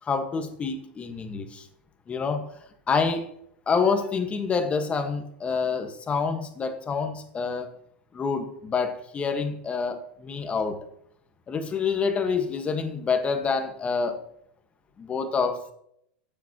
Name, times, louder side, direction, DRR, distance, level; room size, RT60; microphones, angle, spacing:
voice 1, 0.0-1.7 2.1-2.5 2.9-3.3 3.7-7.7 8.1-10.8 11.5-14.2 15.0-15.6, left 5 dB, 20° left, 6 dB, 1.5 m, -27 dB
12.5 x 9.1 x 3.0 m, 0.71 s
hypercardioid pair, 120°, 5 cm